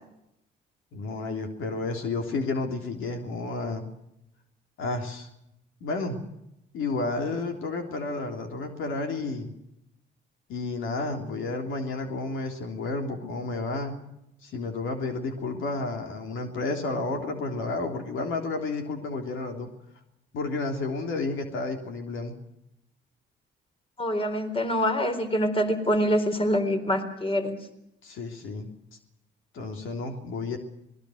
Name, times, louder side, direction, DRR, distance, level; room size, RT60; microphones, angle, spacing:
voice 1, 0.9-3.9 4.8-5.3 5.8-6.2 6.7-9.5 10.5-14.0 14.4-19.7 20.3-22.3 28.0-28.7 29.5-30.6, left 3 dB, 80° left, 4 dB, 3.4 m, -31 dB
voice 2, 24.0-27.6, equal, 30° left, 7 dB, 4.0 m, -25 dB
26.0 x 20.0 x 6.5 m, 0.82 s
cardioid pair, 90°, 20 cm